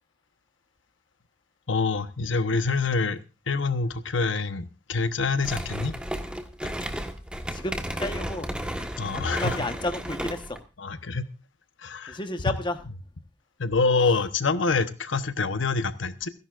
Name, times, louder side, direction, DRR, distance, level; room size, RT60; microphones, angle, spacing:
voice 1, 1.7-3.2 3.5-6.0 6.6-6.7 9.0-9.6 10.8-11.3 11.8-12.2 13.6-16.3, left 4 dB, 85° left, 1.0 m, -26 dB
sound 1, 5.4-10.6, equal, 5° right, 1.4 m, -33 dB
voice 2, 7.5-8.5 9.1-10.6 12.1-12.8, left 2 dB, 25° left, 1.2 m, -32 dB
28.5 x 11.0 x 2.5 m
head